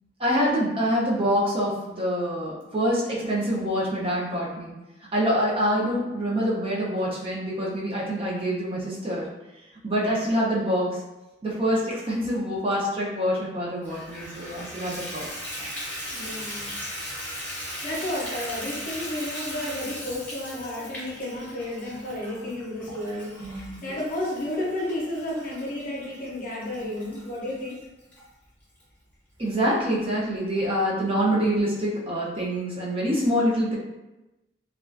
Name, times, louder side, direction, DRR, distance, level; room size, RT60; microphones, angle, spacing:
voice 1, 0.2-4.7 5.1-9.3 9.8-11.0 11.4-15.3 16.1-16.3 23.4-24.0 29.4-33.8, equal, 30° right, -5 dB, 0.5 m, -26 dB
Water tap faucet / Bathtub (filling or washing), 13.8-28.2 28.8-28.9 29.4-29.5 29.8-29.9, equal, 10° left, 0.7 m, -38 dB
voice 2, 16.1-16.8 17.8-27.8, left 1 dB, 45° left, -4 dB, 0.6 m, -32 dB
2.3 x 2.2 x 2.4 m, 1.0 s
head